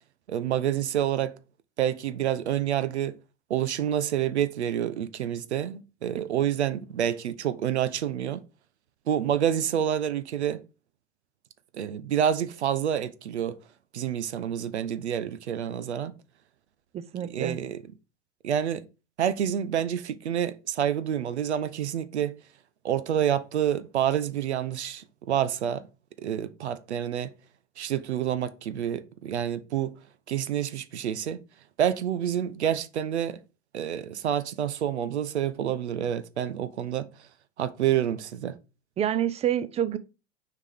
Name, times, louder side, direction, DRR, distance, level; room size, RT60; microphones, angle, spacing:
voice 1, 0.3-1.4 1.8-3.1 3.5-8.4 9.1-10.6 11.7-13.6 13.9-16.1 17.3-17.8 18.4-18.9 19.2-22.3 22.8-25.9 26.2-27.3 27.8-29.9 30.3-31.4 31.8-33.4 33.7-37.1 37.6-38.6, right 10 dB, 70° right, 0.7 m, -28 dB
voice 2, 16.9-17.6 39.0-40.0, right 10 dB, 20° right, 0.5 m, -27 dB
6.4 x 5.0 x 3.5 m
figure-of-eight pair, 80°, 35 cm